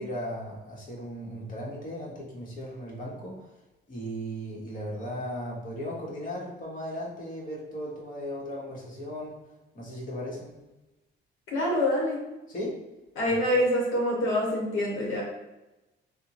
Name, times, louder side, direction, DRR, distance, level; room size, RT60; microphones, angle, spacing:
voice 1, 0.0-3.5 3.9-9.4 9.7-10.5 12.5-12.8 13.3-13.4, equal, 45° left, -4 dB, 1.1 m, -36 dB
voice 2, 11.5-12.2 13.2-15.2, left 1 dB, 80° left, -4 dB, 1.0 m, -25 dB
3.5 x 2.2 x 2.9 m, 1.0 s
cardioid pair, 90°, 20 cm